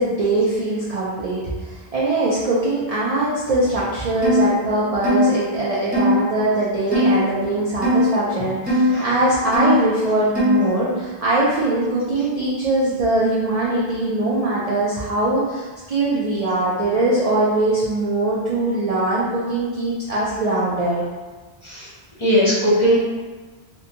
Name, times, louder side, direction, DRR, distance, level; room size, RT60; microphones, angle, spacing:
voice 1, 0.0-21.0, right 2 dB, 55° right, -7 dB, 0.4 m, -21 dB
sound 1, 4.2-4.5 5.0-5.3 5.9-6.1 6.9-7.2 7.8-8.1 8.7-8.9 9.5-9.8 10.3-10.6, equal, 10° right, 0.6 m, -18 dB
voice 2, 22.2-23.0, equal, 35° left, -9 dB, 0.7 m, -18 dB
2.6 x 2.2 x 2.7 m, 1.3 s
omnidirectional pair, 1.0 m